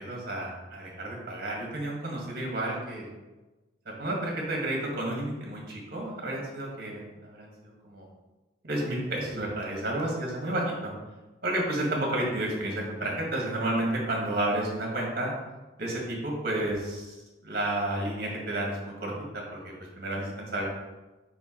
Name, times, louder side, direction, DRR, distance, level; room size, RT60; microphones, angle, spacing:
voice 1, 0.0-3.1 4.0-8.0 8.6-10.6 11.4-15.3 15.8-17.2 17.4-19.1 19.5-20.7, right 1 dB, 55° right, -2 dB, 1.8 m, -31 dB
5.4 x 4.7 x 4.5 m, 1.1 s
head